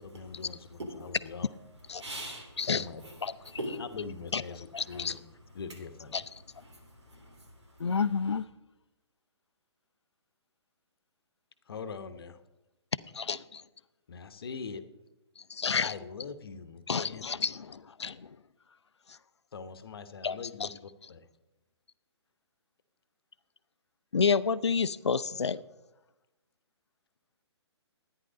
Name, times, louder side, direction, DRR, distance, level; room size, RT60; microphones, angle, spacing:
voice 1, 0.0-1.5 2.7-3.0 3.8-5.2 5.5-6.2 11.7-12.4 14.1-14.8 15.8-17.4 19.5-21.2, left 5 dB, 55° left, 1.0 m, -42 dB
voice 2, 2.0-2.7 3.0-3.2 3.4-3.8 4.8-5.2 6.5-8.0, right 1 dB, 75° right, 3.7 m, -43 dB
voice 3, 4.7-5.1 6.1-6.2 7.8-8.4 13.1-13.6 15.5-15.9 16.9-18.4 20.2-20.7 24.1-25.6, left 5 dB, 70° left, 0.5 m, -29 dB
13.5 x 9.9 x 5.1 m
figure-of-eight pair, 130°, 15 cm